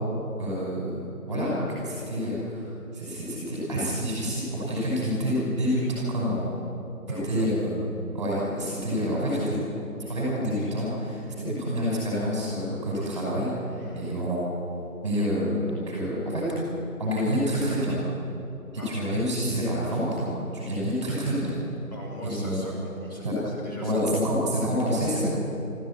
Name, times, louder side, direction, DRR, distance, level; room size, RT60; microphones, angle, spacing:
voice 1, 0.4-1.0 1.3-2.6 2.9-6.4 7.1-7.8 8.1-9.5 10.0-14.4 15.0-16.4 17.0-18.0 18.7-21.6 22.2-22.6 23.2-23.4 23.8-25.3, equal, 20° right, -6 dB, 5.8 m, -27 dB
voice 2, 7.1-7.5 13.8-14.1 18.8-19.0 21.9-24.1, equal, 30° left, -6 dB, 6.5 m, -40 dB
27.0 x 14.0 x 8.8 m, 3.0 s
figure-of-eight pair, 170°, 46 cm